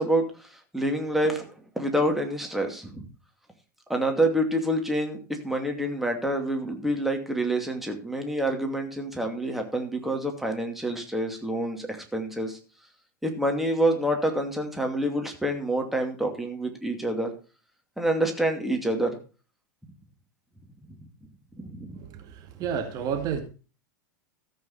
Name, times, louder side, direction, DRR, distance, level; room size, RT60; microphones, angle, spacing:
voice 1, 0.0-3.0 3.9-12.6 13.2-17.3 18.0-19.2 21.6-22.0, right 1 dB, ahead, 3 dB, 2.5 m, -27 dB
voice 2, 22.0-23.4, right 7 dB, 40° right, 5 dB, 2.1 m, -31 dB
14.5 x 8.0 x 4.2 m, 0.34 s
figure-of-eight pair, 85°, 10 cm